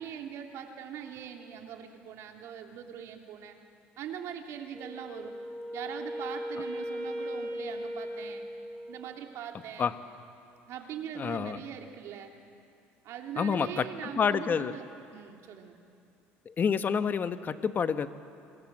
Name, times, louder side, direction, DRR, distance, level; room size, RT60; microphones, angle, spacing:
voice 1, 0.0-3.6 4.0-5.3 5.7-8.5 8.9-9.9 10.7-12.3 13.0-14.9 15.1-15.8, right 8 dB, 65° right, 3 dB, 3.1 m, -41 dB
Wind instrument woodwind instrument, 4.7-9.1, equal, 10° left, 7.6 m, -38 dB
voice 2, 11.2-11.6 13.4-14.7 16.4-18.1, left 6 dB, 35° left, 10 dB, 1.3 m, -28 dB
27.5 x 24.5 x 7.6 m, 2.5 s
supercardioid pair, 100°, 5 cm